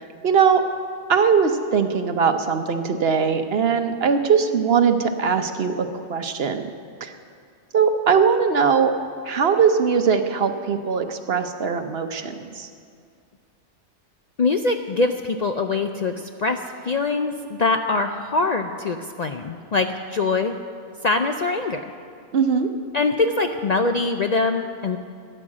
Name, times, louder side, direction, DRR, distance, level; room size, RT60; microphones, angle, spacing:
voice 1, 0.2-0.6 1.1-6.7 7.0-7.1 7.7-9.0 9.3-12.7 22.3-22.7, right 6 dB, 60° right, 8 dB, 1.0 m, -20 dB
voice 2, 14.4-16.6 16.8-20.6 21.0-21.8 22.9-25.0, left 3 dB, 50° left, 6 dB, 0.5 m, -23 dB
14.5 x 10.0 x 7.4 m, 2.3 s
omnidirectional pair, 1.2 m